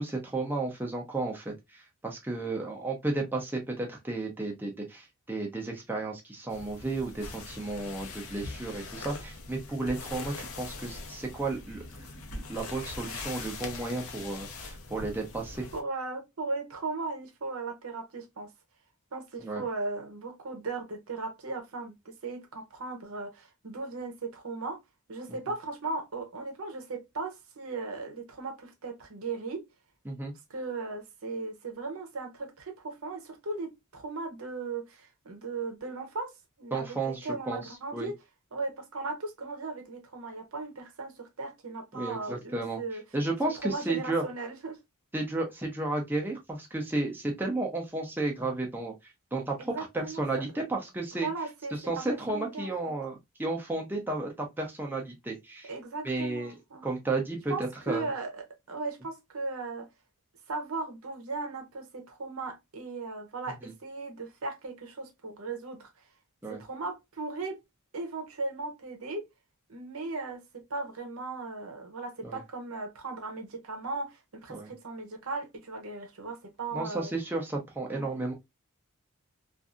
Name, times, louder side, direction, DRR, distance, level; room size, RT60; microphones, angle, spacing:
voice 1, 0.0-15.7 19.4-19.6 30.1-30.3 36.7-37.6 37.9-38.1 41.9-42.8 43.1-44.2 45.1-48.9 49.3-51.3 51.9-55.7 56.0-56.5 56.8-57.5 57.9-58.1 63.6-63.7 66.4-66.6 72.2-72.4 74.5-74.7 76.7-78.3, right 2 dB, 10° right, 0.6 m, -33 dB
sound 1, 6.5-15.8, left 3 dB, 70° left, 0.7 m, -42 dB
voice 2, 15.7-18.5 19.1-24.8 25.1-29.7 30.5-36.3 36.6-38.1 38.5-43.0 43.6-44.8 49.6-50.3 51.2-52.9 55.6-57.0 57.5-59.9 60.5-65.9 66.5-67.6 67.9-69.3 69.7-77.1 77.9-78.2, right 3 dB, 70° right, 0.8 m, -37 dB
2.6 x 2.5 x 2.4 m
head